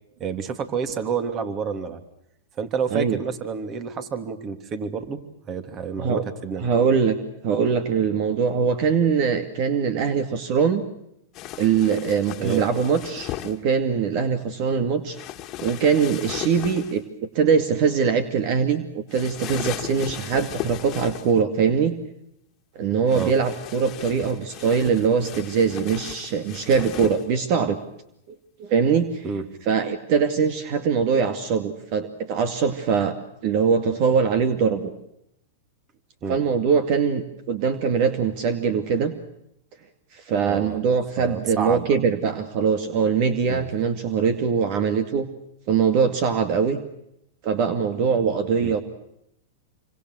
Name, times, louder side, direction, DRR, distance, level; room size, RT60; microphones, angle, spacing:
voice 1, 0.2-2.0 2.6-5.2 5.5-6.7 12.4-12.6 23.1-23.3 29.2-29.5 36.2-36.4 40.4-40.8 41.2-41.9 43.5-43.7 48.6-48.8, right 6 dB, 30° right, 9 dB, 3.1 m, -29 dB
voice 2, 6.6-7.2 7.4-10.8 11.6-15.2 15.6-17.0 17.3-22.0 22.8-27.8 28.6-29.2 29.7-33.1 33.4-34.9 36.3-39.1 40.1-45.3 45.7-46.8 47.4-48.8, right 6 dB, 50° right, 9 dB, 2.4 m, -22 dB
sound 1, 11.3-13.6 15.1-17.0 19.1-21.4 23.1-27.3, left 13 dB, 35° left, 2.0 m, -36 dB
27.0 x 25.5 x 6.4 m, 0.78 s
hypercardioid pair, 125°, 0 cm